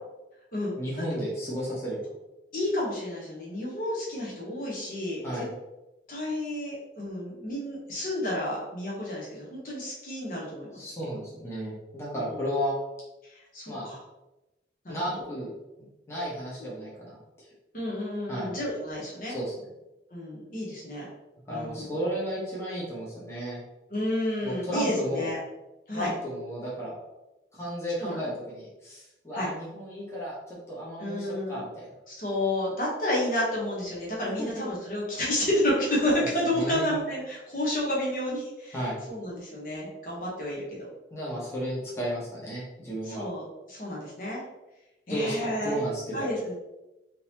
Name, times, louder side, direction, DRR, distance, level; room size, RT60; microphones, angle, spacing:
voice 1, 0.8-2.0 5.2-5.5 10.7-12.7 13.7-13.9 14.9-15.5 16.1-17.2 18.3-18.5 19.3-19.7 21.5-23.6 24.4-25.3 25.9-27.0 27.5-31.9 34.4-34.5 36.2-36.9 38.7-39.0 41.1-43.2 45.1-46.3, equal, 15° left, -6 dB, 1.0 m, -33 dB
voice 2, 2.5-5.5 6.1-10.7 12.1-12.4 13.3-14.0 14.8-15.0 17.7-19.4 20.1-21.1 21.5-22.0 23.9-25.4 25.9-26.1 28.0-28.3 29.3-29.5 31.0-31.6 32.1-38.8 39.1-40.9 43.0-44.4 45.1-45.8 46.1-46.5, left 1 dB, 50° left, -5 dB, 1.0 m, -30 dB
3.8 x 2.8 x 2.8 m, 0.99 s
head